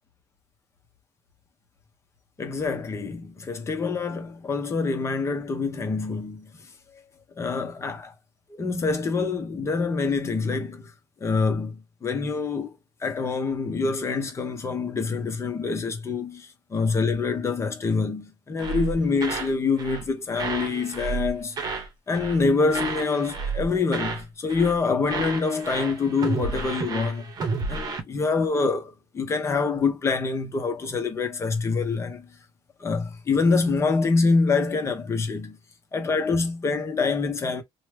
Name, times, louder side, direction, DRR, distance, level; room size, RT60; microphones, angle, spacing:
voice 1, 2.4-6.5 7.4-8.1 8.5-10.9 11.2-12.7 13.0-21.6 22.1-27.3 27.7-32.2 32.8-35.6 35.9-37.6, left 4 dB, 25° left, 1.0 m, -26 dB
sound 1, 18.6-19.5 19.8-20.1 20.4-21.9 22.1-22.4 22.7-24.2 24.5-24.8 25.1-28.0, right 4 dB, 40° right, 0.9 m, -31 dB
3.0 x 2.3 x 3.3 m
cardioid pair, 150°, 10 cm